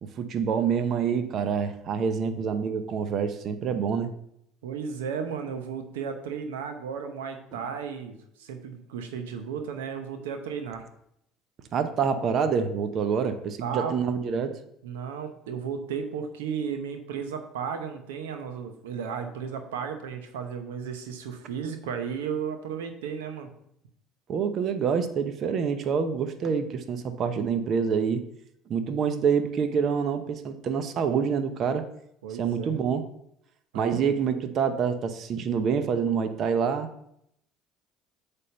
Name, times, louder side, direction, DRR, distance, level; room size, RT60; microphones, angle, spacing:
voice 1, 0.0-4.1 11.7-14.6 24.3-28.2 28.7-31.9 32.4-33.1 33.7-37.1, right 6 dB, 55° right, 9 dB, 0.8 m, -27 dB
voice 2, 4.6-10.8 13.6-14.0 14.8-23.5 32.2-32.7 33.7-34.0, right 7 dB, 80° right, 6 dB, 0.8 m, -34 dB
8.3 x 3.6 x 6.8 m, 0.75 s
hypercardioid pair, 65°, 0 cm